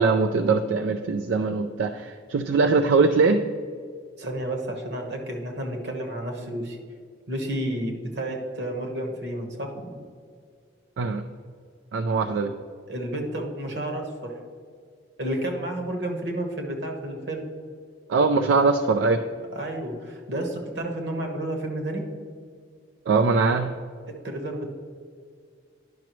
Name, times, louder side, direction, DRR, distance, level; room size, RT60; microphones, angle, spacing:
voice 1, 0.0-3.4 11.0-11.2 11.9-12.5 18.1-19.2 23.1-23.7, right 4 dB, 80° right, 7 dB, 0.4 m, -21 dB
voice 2, 4.2-6.8 7.3-10.1 12.2-12.4 12.9-14.3 15.2-17.4 19.5-22.1 24.2-24.6, right 1 dB, 65° right, 3 dB, 1.2 m, -31 dB
10.5 x 5.9 x 3.1 m, 2.1 s
head